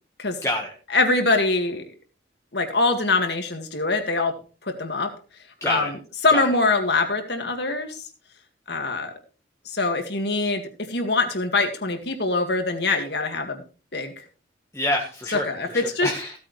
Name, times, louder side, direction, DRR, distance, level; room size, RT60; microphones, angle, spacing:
voice 1, 0.4-0.7 5.6-5.9 6.3-6.5 14.7-16.4, left 1 dB, 15° left, 0 dB, 1.3 m, -27 dB
voice 2, 0.9-1.8 2.5-4.3 4.6-5.1 5.6-6.0 6.2-8.1 8.7-9.2 9.7-13.6 13.9-14.2 15.3-16.1, left 3 dB, 60° left, 5 dB, 2.0 m, -23 dB
16.0 x 8.8 x 3.2 m, 0.36 s
head